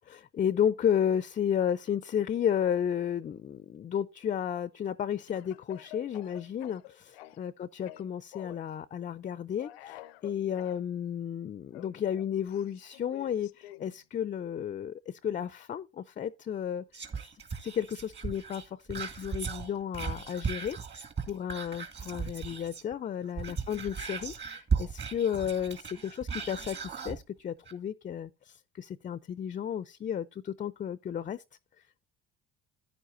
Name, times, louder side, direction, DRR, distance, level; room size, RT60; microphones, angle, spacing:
voice 1, 0.0-16.8 17.6-31.4, left 9 dB, 25° left, 0.4 m, -33 dB
Speech / Cough, 5.3-7.5 7.9-8.7 9.6-10.8 11.7-14.0, left 15 dB, 85° left, 0.6 m, -49 dB
Whispering, 16.9-22.9 23.3-27.2 27.7-27.8, right 5 dB, 35° right, 2.1 m, -36 dB
10.0 x 9.7 x 2.6 m
hypercardioid pair, 70°, 30 cm